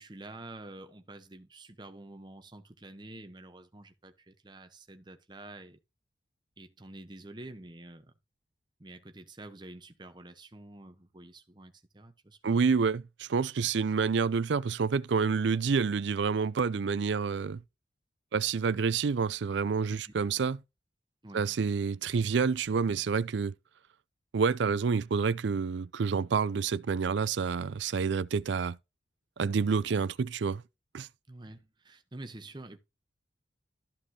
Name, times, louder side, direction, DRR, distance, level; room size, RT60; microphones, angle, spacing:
voice 1, 0.0-5.8 6.6-8.1 8.8-12.7 19.9-20.1 21.2-21.4 31.3-32.8, right 2 dB, 25° right, 0.9 m, -48 dB
voice 2, 12.4-17.6 18.3-20.6 21.3-23.5 24.3-28.8 29.4-30.6 30.9-31.1, right 5 dB, 75° right, 0.4 m, -28 dB
13.0 x 5.2 x 2.8 m
head